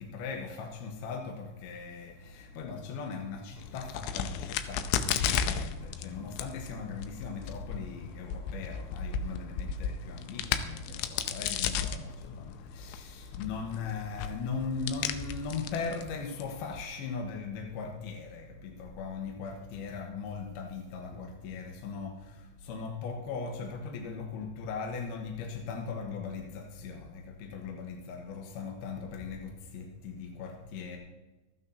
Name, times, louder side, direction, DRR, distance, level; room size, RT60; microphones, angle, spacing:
voice 1, 0.0-31.0, left 5 dB, 70° left, 2 dB, 2.7 m, -39 dB
sound 1, 2.2-11.4, left 1 dB, 20° left, 5.4 m, -56 dB
Crack, 3.6-16.8, left 7 dB, 90° left, 3.2 m, -35 dB
25.5 x 9.4 x 2.8 m, 1.1 s
omnidirectional pair, 5.3 m